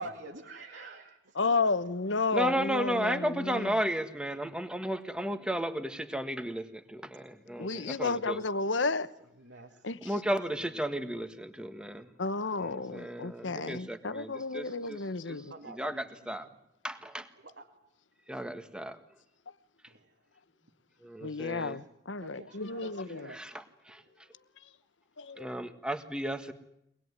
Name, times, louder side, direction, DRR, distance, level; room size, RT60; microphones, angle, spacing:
voice 1, 0.0-1.5 7.0-7.1 9.4-9.8 10.2-10.6 15.5-16.4 17.4-17.7 19.8-20.1 22.2-23.4, right 2 dB, 75° right, 2.4 m, -47 dB
voice 2, 1.3-3.7 7.6-9.1 9.8-10.1 12.2-15.5 21.2-23.3 25.2-25.5, left 3 dB, 90° left, 1.2 m, -32 dB
voice 3, 2.3-8.4 10.0-12.1 12.6-15.0 15.3-15.4 15.7-16.5 16.8-17.3 18.3-19.0 21.0-21.8 23.3-24.0 25.4-26.5, equal, 5° right, 1.6 m, -34 dB
24.5 x 20.0 x 9.8 m
head